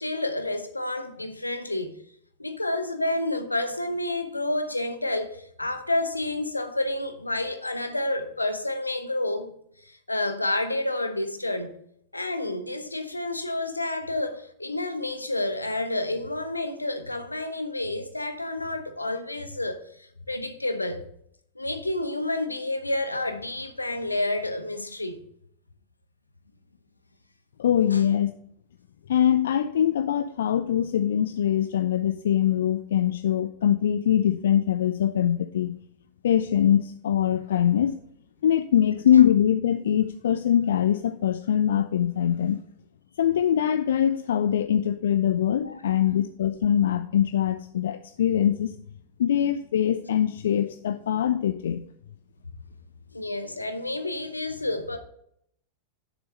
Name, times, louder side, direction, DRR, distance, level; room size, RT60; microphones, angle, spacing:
voice 1, 0.0-2.0 2.4-9.5 9.8-11.7 12.1-21.0 21.6-25.2 27.9-28.0 45.6-45.8 53.1-55.0, left 2 dB, 85° left, 0.8 m, -29 dB
voice 2, 27.6-28.3 29.1-35.7 36.2-38.0 38.4-42.6 43.2-48.8 49.2-51.8, left 10 dB, 60° left, 0.3 m, -23 dB
6.9 x 6.0 x 5.3 m
figure-of-eight pair, 90°, 0 cm